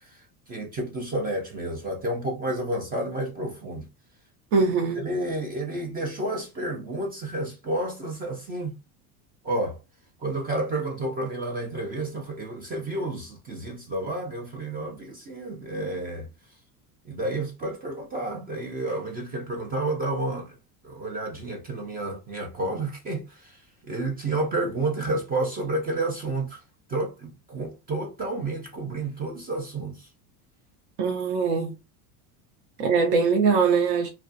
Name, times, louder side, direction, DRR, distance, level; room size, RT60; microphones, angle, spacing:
voice 1, 0.0-3.9 5.0-8.8 9.4-9.8 10.2-16.3 17.1-20.6 20.8-26.6 26.9-30.1, right 2 dB, 20° right, 0.4 m, -30 dB
voice 2, 4.5-5.0 31.0-31.7 32.8-34.1, right 5 dB, 60° right, 0.8 m, -22 dB
2.3 x 2.2 x 2.5 m
supercardioid pair, 125°, 46 cm